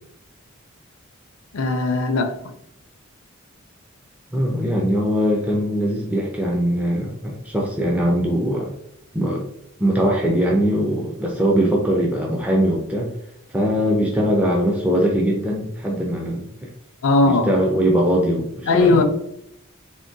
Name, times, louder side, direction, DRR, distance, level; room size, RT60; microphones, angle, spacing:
voice 1, 1.5-2.4 17.0-17.5 18.7-19.0, left 2 dB, 75° left, 0.4 m, -18 dB
voice 2, 4.3-8.7 9.1-9.4 9.8-13.1 13.5-16.7 17.2-19.0, equal, 5° right, 0.4 m, -21 dB
3.6 x 2.2 x 2.5 m
head